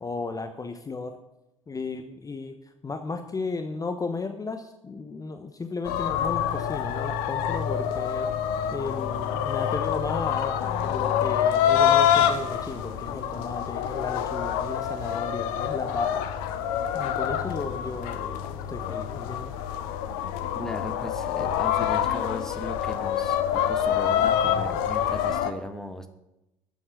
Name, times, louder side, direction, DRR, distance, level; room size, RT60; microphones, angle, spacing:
voice 1, 0.0-1.1 1.7-2.5 2.8-8.3 8.7-16.3 16.9-19.5 24.4-24.7, left 4 dB, 20° left, 7 dB, 1.0 m, -34 dB
sound 1, 5.8-25.5, left 9 dB, 55° left, 0.9 m, -26 dB
voice 2, 20.5-26.1, left 1 dB, 5° left, 8 dB, 1.2 m, -37 dB
12.5 x 7.8 x 6.0 m, 0.94 s
figure-of-eight pair, 60°, 17 cm